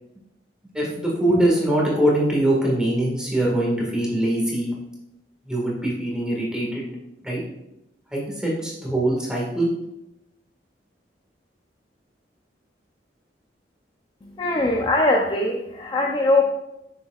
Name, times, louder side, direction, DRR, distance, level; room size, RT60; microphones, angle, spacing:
voice 1, 0.7-4.7 5.4-6.9 7.2-7.4 8.1-9.7, right 1 dB, 5° right, -4 dB, 1.7 m, -22 dB
voice 2, 14.2-16.4, left 2 dB, 25° left, 0 dB, 0.5 m, -21 dB
7.1 x 6.6 x 2.4 m, 0.87 s
head